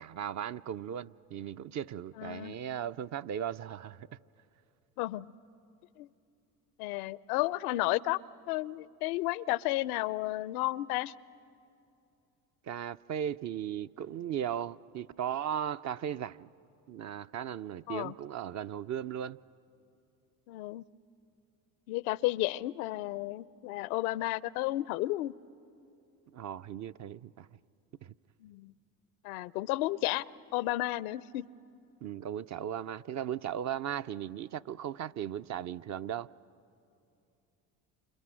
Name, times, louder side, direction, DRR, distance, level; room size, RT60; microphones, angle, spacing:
voice 1, 0.0-4.1 12.6-16.5 16.9-19.4 26.3-27.5 28.0-28.1 32.0-36.3, right 9 dB, 40° right, 0.5 m, -37 dB
voice 2, 2.2-2.5 5.0-5.3 6.0-6.1 6.8-8.2 8.5-11.1 17.9-18.1 20.5-20.8 21.9-25.3 28.4-28.7 29.2-30.2 30.5-31.5, left 17 dB, 80° left, 0.6 m, -32 dB
29.5 x 28.0 x 6.3 m
hypercardioid pair, 65°, 43 cm